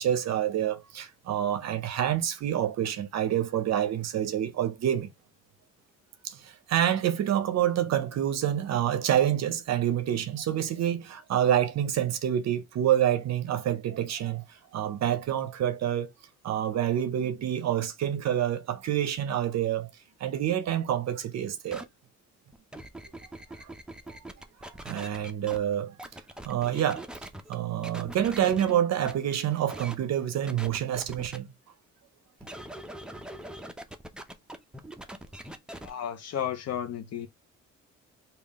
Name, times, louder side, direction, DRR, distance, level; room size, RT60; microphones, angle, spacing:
voice 1, 0.0-5.1 6.2-16.1 16.4-19.9 20.2-21.8 23.6-23.7 24.1-24.2 24.6-25.9 26.4-27.1 27.5-31.5, right 10 dB, 60° right, 0.6 m, -27 dB
sound 1, 21.7-21.8 22.5-25.6 26.0-27.5 27.8-28.7 29.0-29.1 29.7-30.0 30.5-31.4 32.4-35.9, right 1 dB, 5° right, 0.5 m, -42 dB
voice 2, 35.8-37.3, left 9 dB, 60° left, 0.6 m, -33 dB
3.5 x 2.4 x 3.4 m
cardioid pair, 90°, 30 cm